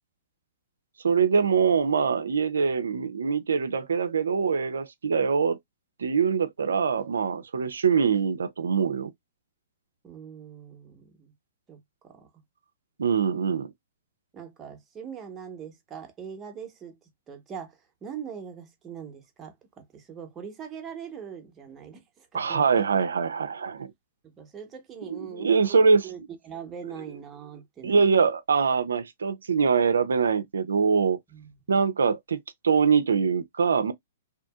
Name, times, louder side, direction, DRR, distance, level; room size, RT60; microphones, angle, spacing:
voice 1, 1.0-5.6 6.0-9.1 13.0-13.7 22.3-23.9 25.1-26.1 27.8-31.2 31.7-32.4 32.6-33.9, right 5 dB, 80° right, 0.5 m, -23 dB
voice 2, 10.0-11.3 11.7-11.8 12.0-12.3 14.3-17.0 17.3-19.5 19.9-22.8 24.4-28.3 31.3-31.8, right 7 dB, 20° right, 0.9 m, -42 dB
2.7 x 2.6 x 2.2 m
hypercardioid pair, 125°, 0 cm